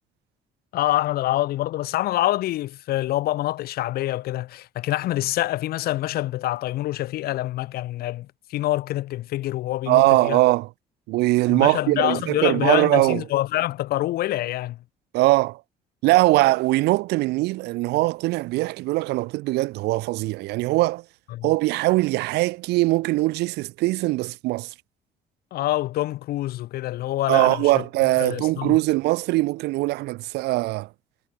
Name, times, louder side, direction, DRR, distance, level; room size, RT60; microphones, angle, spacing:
voice 1, 0.7-10.4 11.5-14.8 21.3-21.5 25.5-27.8 28.2-28.8, left 15 dB, 65° left, 0.6 m, -26 dB
voice 2, 9.9-10.7 11.1-13.2 15.1-15.6 16.0-21.0 21.4-24.7 27.3-30.9, right 20 dB, 80° right, 0.4 m, -21 dB
cardioid pair, 110°, 17 cm